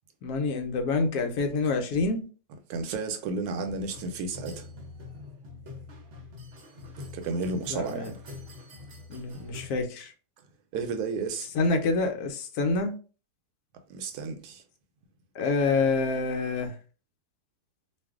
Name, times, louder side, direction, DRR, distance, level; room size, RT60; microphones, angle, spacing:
voice 1, 0.2-2.3 7.7-8.1 9.1-10.1 11.5-12.9 15.3-16.7, left 3 dB, 75° left, 1.1 m, -27 dB
voice 2, 2.7-4.7 7.1-8.2 10.7-11.5 13.9-14.6, right 4 dB, 80° right, 1.1 m, -32 dB
sound 1, 3.6-9.7, left 3 dB, 50° right, 0.8 m, -44 dB
2.6 x 2.4 x 3.5 m
omnidirectional pair, 1.7 m